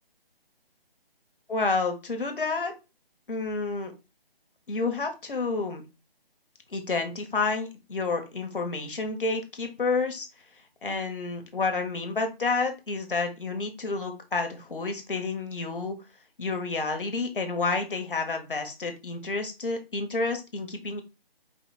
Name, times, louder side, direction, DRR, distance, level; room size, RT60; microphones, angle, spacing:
voice 1, 1.5-2.7 3.3-3.9 4.7-5.9 6.7-10.3 10.8-16.0 16.4-21.0, left 3 dB, 60° left, 5 dB, 1.3 m, -29 dB
4.9 x 2.6 x 4.0 m, 0.27 s
hypercardioid pair, 180°, 30 cm